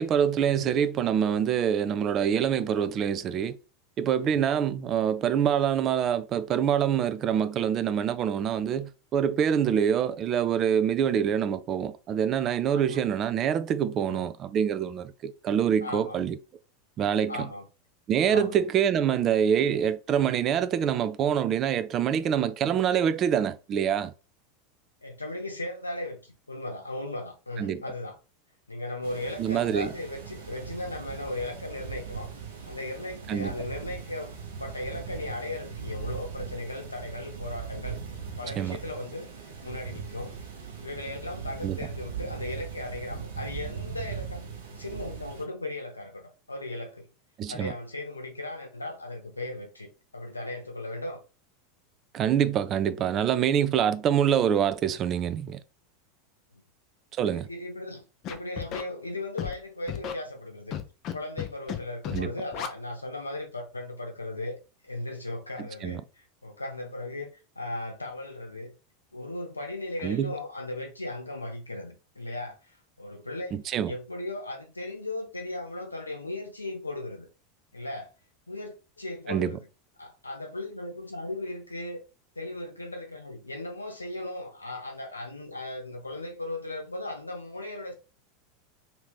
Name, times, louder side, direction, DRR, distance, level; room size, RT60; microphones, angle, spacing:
voice 1, 0.0-3.6 4.0-16.4 17.0-17.5 18.1-24.1 27.6-27.8 29.4-29.9 33.3-33.5 38.6-38.8 41.6-41.8 47.4-47.7 52.1-55.6 57.2-57.5 62.1-62.3 65.8-66.0 70.0-70.3 73.5-73.9 79.3-79.6, right 8 dB, 35° right, 0.3 m, -25 dB
voice 2, 4.2-4.5 12.7-13.0 14.1-14.3 15.8-16.2 17.3-17.6 18.3-18.6 25.0-28.2 28.7-32.3 32.7-34.3 34.6-38.0 38.4-40.4 40.8-47.1 47.5-51.2 56.5-56.6 57.3-60.8 61.1-64.6 64.8-68.7 69.1-73.6 73.9-77.3 77.7-78.1 78.5-79.7 80.0-82.0 82.4-87.9, left 2 dB, 85° left, 0.7 m, -37 dB
sound 1, 29.0-45.4, right 6 dB, 70° right, 0.9 m, -40 dB
Scratching (performance technique), 58.2-58.8 59.4-59.5 59.9-60.1 60.7-61.1 61.4-61.8 62.0-62.2 62.5-62.7, left 9 dB, 40° left, 0.5 m, -33 dB
2.8 x 2.8 x 3.4 m
figure-of-eight pair, 85°, 0 cm